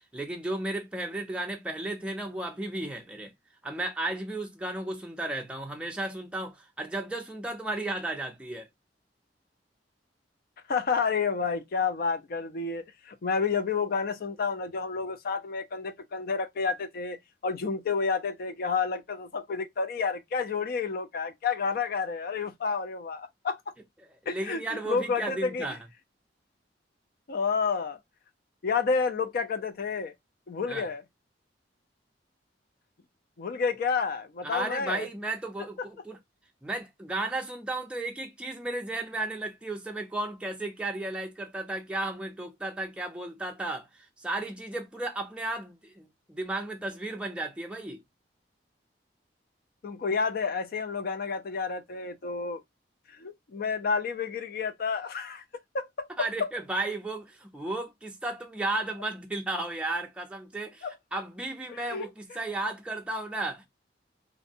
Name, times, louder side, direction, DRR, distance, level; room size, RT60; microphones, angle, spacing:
voice 1, 0.1-3.3 3.6-8.7 24.2-25.8 30.7-30.9 34.4-36.2 36.6-48.0 56.2-63.7, right 2 dB, 5° right, 0.4 m, -34 dB
voice 2, 10.7-17.2 17.4-23.6 24.3-25.7 27.3-28.0 28.6-30.1 30.5-31.0 33.4-35.1 49.8-52.6 53.1-55.4 55.7-56.1 56.4-56.5 60.8-60.9 61.7-62.4, left 5 dB, 55° left, 0.4 m, -30 dB
2.5 x 2.1 x 2.6 m
head